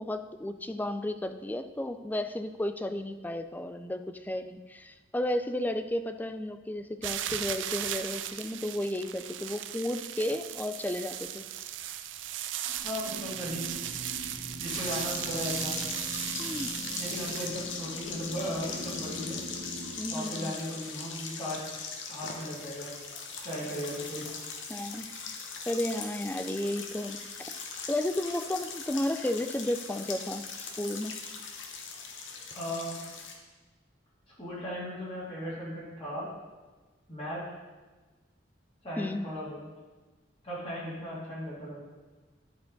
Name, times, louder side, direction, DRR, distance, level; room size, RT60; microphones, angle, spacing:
voice 1, 0.0-11.4 16.4-16.7 20.0-20.5 24.7-25.0 25.3-25.4 25.7-27.2 27.9-31.2 39.0-39.2, left 1 dB, 10° left, 8 dB, 0.3 m, -33 dB
sound 1, 7.0-17.5, right 11 dB, 75° right, 0.4 m, -37 dB
sound 2, 12.6-19.9, left 1 dB, 60° left, 2.7 m, -43 dB
voice 2, 12.8-13.8 14.6-15.8 17.0-19.4 20.1-21.6 22.1-22.9 23.4-24.3 32.5-33.0 34.4-36.3 37.1-37.4 38.8-39.6 40.4-41.8, equal, 30° left, -9 dB, 2.5 m, -37 dB
sound 3, 14.7-33.3, left 5 dB, 85° left, 1.0 m, -40 dB
11.5 x 4.6 x 3.9 m, 1.3 s
head